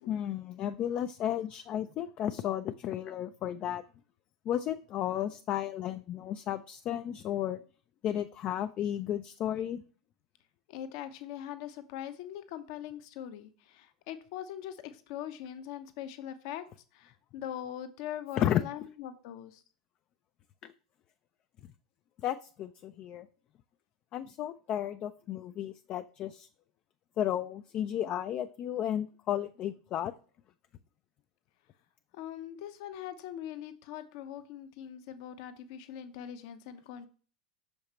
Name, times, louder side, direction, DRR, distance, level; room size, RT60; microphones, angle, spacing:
voice 1, 0.1-3.8 4.5-7.6 8.0-9.8 18.4-18.6 20.6-20.7 22.2-23.3 24.1-26.5 27.2-30.1, left 11 dB, 40° left, 10 dB, 0.4 m, -33 dB
voice 2, 10.7-16.6 16.9-19.6 32.1-37.1, left 10 dB, 55° left, 10 dB, 0.8 m, -42 dB
6.3 x 5.2 x 3.0 m, 0.39 s
hypercardioid pair, 85°, 3 cm